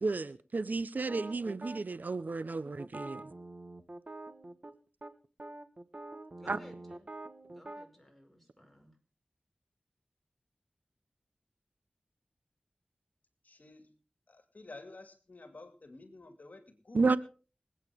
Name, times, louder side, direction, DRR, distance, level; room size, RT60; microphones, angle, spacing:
voice 1, 0.0-3.2 6.5-6.6 16.9-17.2, right 3 dB, 65° right, 0.7 m, -32 dB
sound 1, 1.1-1.8 2.8-4.7 5.0-5.1 5.4-7.9, right 2 dB, 45° right, 1.4 m, -46 dB
voice 2, 6.4-7.1 7.5-9.0, left 1 dB, ahead, 5.3 m, -55 dB
voice 3, 13.4-13.9 14.3-17.2, left 2 dB, 60° left, 2.3 m, -51 dB
26.0 x 8.8 x 3.6 m
cardioid pair, 45°, 3 cm